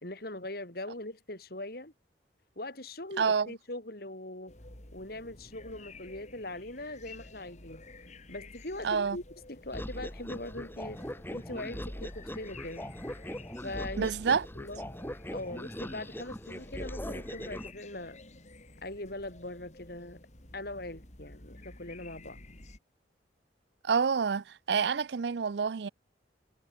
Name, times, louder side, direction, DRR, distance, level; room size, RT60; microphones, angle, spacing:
voice 1, 0.0-1.9 2.6-4.6 4.9-7.8 8.3-9.2 9.5-11.0 11.3-12.9 13.6-14.1 14.6-14.9 15.3-18.2 18.8-20.2 20.5-22.4, left 1 dB, 55° left, 4.1 m, -41 dB
voice 2, 3.2-3.5 8.8-9.2 14.0-14.5 23.8-25.9, right 6 dB, 65° right, 0.5 m, -28 dB
sound 1, 4.5-22.8, left 2 dB, 40° left, 3.0 m, -52 dB
sound 2, 9.7-17.7, equal, 10° left, 3.2 m, -40 dB
head